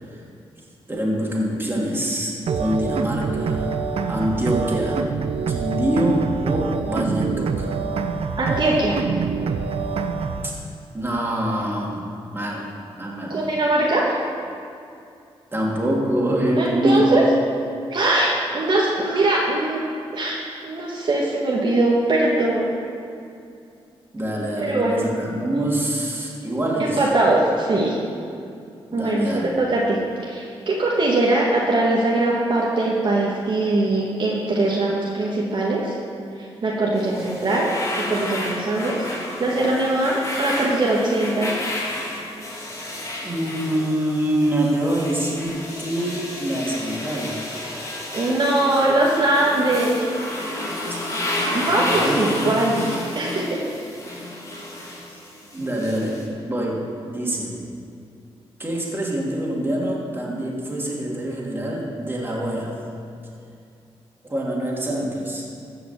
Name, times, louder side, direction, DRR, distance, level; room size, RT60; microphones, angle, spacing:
voice 1, 0.9-3.7 4.1-5.0 5.5-7.7 10.4-10.5 10.9-12.0 12.3-12.7 13.0-13.4 15.5-17.1 24.1-27.0 28.9-29.5 43.2-47.4 51.4-52.6 54.9-55.0 55.5-57.6 58.6-62.7 64.3-65.5, right 1 dB, 20° right, -4 dB, 2.9 m, -25 dB
sound 1, 2.5-10.5, right 5 dB, 70° right, 0.7 m, -25 dB
voice 2, 8.4-9.0 13.3-14.1 16.6-17.2 17.9-19.8 20.1-22.7 24.6-24.9 26.8-28.0 28.9-36.0 36.4-37.7 38.0-39.0 39.4-41.5 48.1-50.1 51.5-52.8 53.1-53.6, right 2 dB, 50° right, -4 dB, 1.8 m, -21 dB
sound 2, 37.0-56.2, left 1 dB, 30° left, 2.7 m, -31 dB
15.0 x 5.8 x 7.5 m, 2.5 s
cardioid pair, 100°, 10 cm